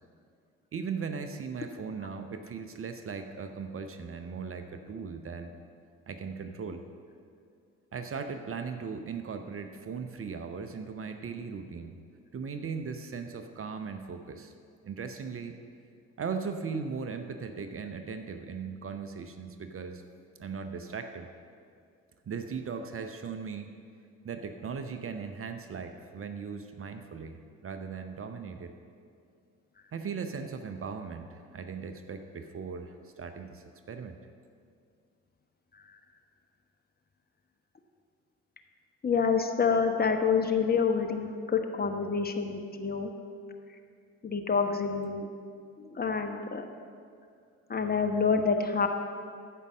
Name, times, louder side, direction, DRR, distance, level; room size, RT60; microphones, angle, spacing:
voice 1, 0.7-5.5 6.1-6.8 7.9-12.0 12.3-14.5 14.8-15.5 16.2-20.0 20.4-21.3 22.3-23.7 24.2-28.7 29.9-34.2, right 5 dB, 35° right, 7 dB, 0.9 m, -38 dB
voice 2, 39.0-43.1 44.2-45.3 45.8-46.6 47.7-48.9, left 5 dB, 25° left, 4 dB, 1.2 m, -27 dB
14.0 x 5.4 x 7.4 m, 2.3 s
figure-of-eight pair, 50°, 37 cm